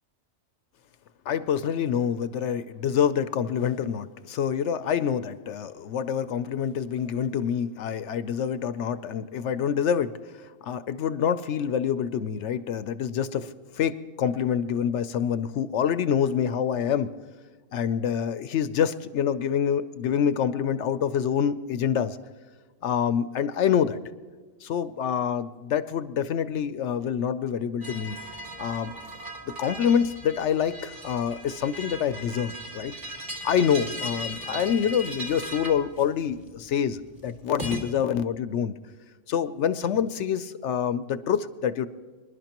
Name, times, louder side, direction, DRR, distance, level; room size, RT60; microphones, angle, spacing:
voice 1, 1.3-10.1 10.6-17.1 17.7-22.2 22.8-24.0 24.6-28.2 28.6-28.9 29.6-32.9 33.4-38.7 39.3-41.9, left 8 dB, 65° left, 13 dB, 0.8 m, -26 dB
sound 1, 27.8-37.8, equal, 40° right, 2.5 m, -38 dB
25.5 x 11.5 x 3.0 m, 1.4 s
omnidirectional pair, 1.4 m